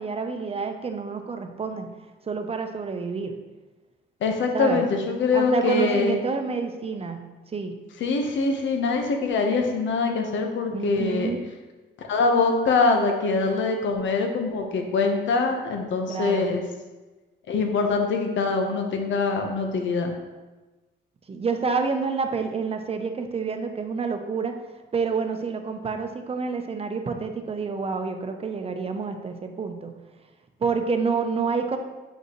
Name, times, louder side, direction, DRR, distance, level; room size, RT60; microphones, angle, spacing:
voice 1, 0.0-1.9 2.2-3.3 4.5-4.9 5.3-7.8 10.7-11.4 16.1-16.5 21.3-24.6 24.9-29.9 30.6-31.8, right 5 dB, 30° right, 6 dB, 0.7 m, -28 dB
voice 2, 4.2-6.2 8.0-11.3 12.1-16.6 17.5-20.1, left 4 dB, 70° left, 3 dB, 1.1 m, -23 dB
7.6 x 5.5 x 3.1 m, 1.2 s
cardioid pair, 90°, 20 cm